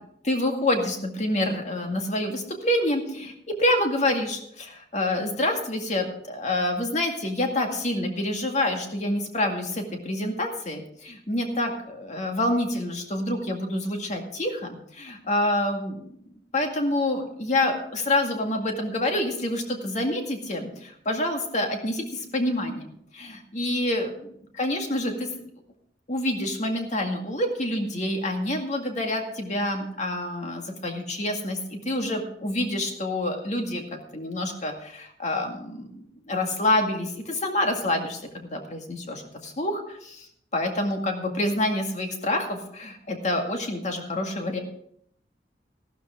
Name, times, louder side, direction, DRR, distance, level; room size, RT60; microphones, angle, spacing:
voice 1, 0.2-16.1 16.5-25.3 26.1-33.8 34.1-40.3 40.5-44.6, left 1 dB, 40° left, 3 dB, 2.1 m, -27 dB
13.5 x 12.5 x 3.7 m, 0.70 s
head